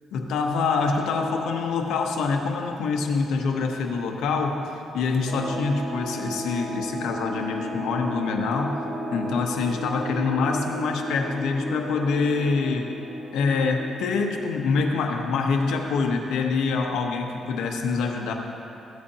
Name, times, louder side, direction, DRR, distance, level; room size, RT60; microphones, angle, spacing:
voice 1, 0.1-4.7 4.9-12.9 13.3-18.3, left 4 dB, 80° left, 2 dB, 0.9 m, -25 dB
sound 1, 5.3-14.6, right 1 dB, 75° right, 2.2 m, -34 dB
15.0 x 8.3 x 2.8 m, 2.8 s
cardioid pair, 90°, 0 cm